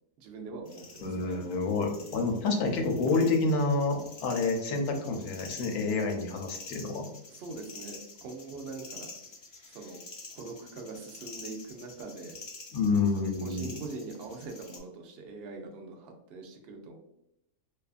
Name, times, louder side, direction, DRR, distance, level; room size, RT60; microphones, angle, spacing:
voice 1, 0.2-1.4 7.3-9.1 9.7-10.0 10.3-12.4 13.2-17.0, right 3 dB, 70° right, 2 dB, 0.5 m, -43 dB
sound 1, 0.7-14.8, left 3 dB, 50° left, 0.8 m, -48 dB
voice 2, 1.0-7.0 12.7-13.7, left 3 dB, 90° left, 3 dB, 1.1 m, -28 dB
2.6 x 2.3 x 2.4 m, 0.79 s
omnidirectional pair, 1.5 m